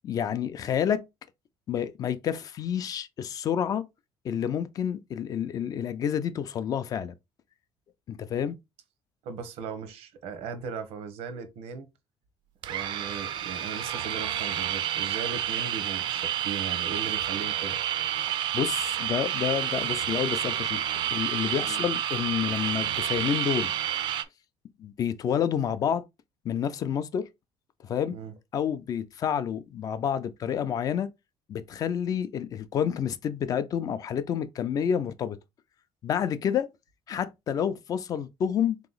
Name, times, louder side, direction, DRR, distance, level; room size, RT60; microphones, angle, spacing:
voice 1, 0.0-1.1 1.7-3.9 4.2-7.1 8.1-8.6 18.5-23.7 24.8-26.0 26.4-27.3 27.8-28.1 28.5-31.1 31.5-35.4 36.0-36.7 37.1-38.8, left 8 dB, 35° left, 0.4 m, -29 dB
voice 2, 9.2-11.9 12.7-17.8 21.6-21.9 28.1-28.3, right 6 dB, 85° right, 0.9 m, -38 dB
sound 1, 12.6-24.2, right 11 dB, 50° right, 0.4 m, -29 dB
3.8 x 2.9 x 3.8 m
cardioid pair, 170°, 10 cm